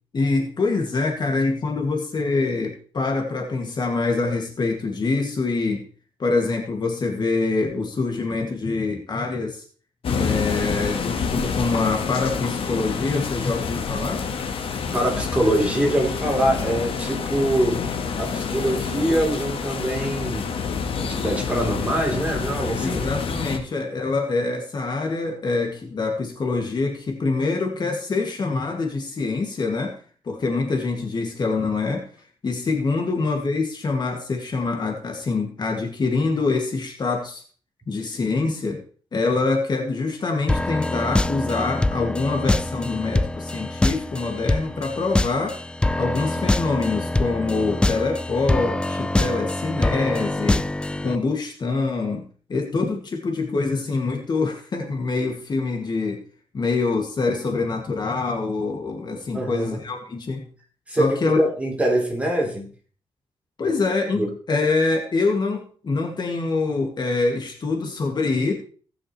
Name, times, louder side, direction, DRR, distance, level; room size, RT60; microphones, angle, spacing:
voice 1, 0.1-5.8 6.2-9.6 10.2-14.2 22.8-30.0 30.2-32.1 32.4-37.4 37.9-38.8 39.1-45.6 46.0-50.6 51.0-56.2 56.5-60.4 60.9-61.4 63.6-64.2 64.5-68.5, left 3 dB, 45° left, 2 dB, 2.1 m, -25 dB
sound 1, 10.0-23.6, left 5 dB, 65° left, 1.4 m, -28 dB
voice 2, 14.7-20.5 21.0-23.1 59.3-59.8 60.9-62.7 64.1-64.3, right 1 dB, 15° right, -1 dB, 3.4 m, -24 dB
sound 2, 40.5-51.2, left 2 dB, 10° left, 0.4 m, -24 dB
18.5 x 6.4 x 3.2 m, 0.42 s
cardioid pair, 90°, 10 cm